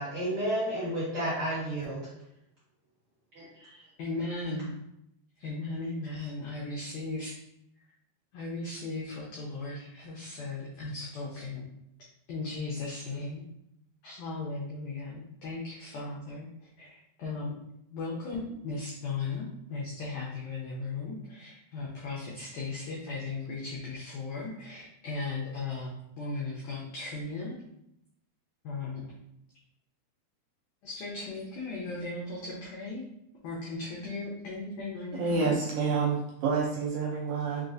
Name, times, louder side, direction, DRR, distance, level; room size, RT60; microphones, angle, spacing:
voice 1, 0.0-2.1 3.3-3.8, right 1 dB, 50° right, -10 dB, 1.6 m, -32 dB
voice 2, 4.0-4.7 5.4-7.3 8.3-11.6 12.3-13.4 14.0-16.5 16.8-17.6 17.9-27.6 28.6-29.0 30.8-33.0 33.4-35.5, left 3 dB, 85° left, -5 dB, 1.7 m, -37 dB
voice 3, 35.2-37.7, right 4 dB, 85° right, -4 dB, 2.0 m, -28 dB
5.9 x 2.3 x 2.6 m, 0.79 s
omnidirectional pair, 4.4 m